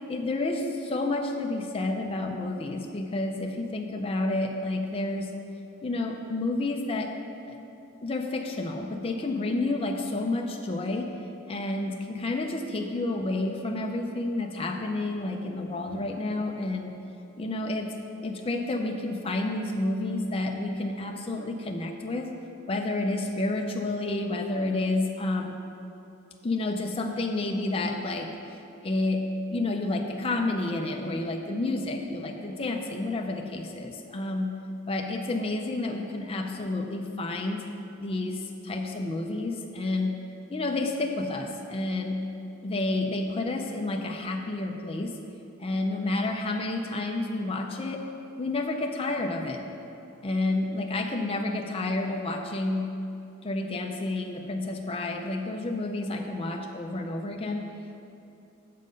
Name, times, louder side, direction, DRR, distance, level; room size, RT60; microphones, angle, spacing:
voice 1, 0.1-5.3 5.8-7.1 7.5-7.6 8.0-11.1 11.5-17.0 17.4-17.9 18.2-22.3 22.7-25.6 26.4-28.3 28.8-29.2 29.5-34.5 34.9-37.6 38.0-40.2 40.5-42.2 42.6-45.1 45.6-48.0 48.4-49.6 50.2-52.9 53.4-57.6, left 2 dB, 25° left, 2 dB, 0.5 m, -30 dB
7.4 x 6.5 x 5.2 m, 2.7 s
head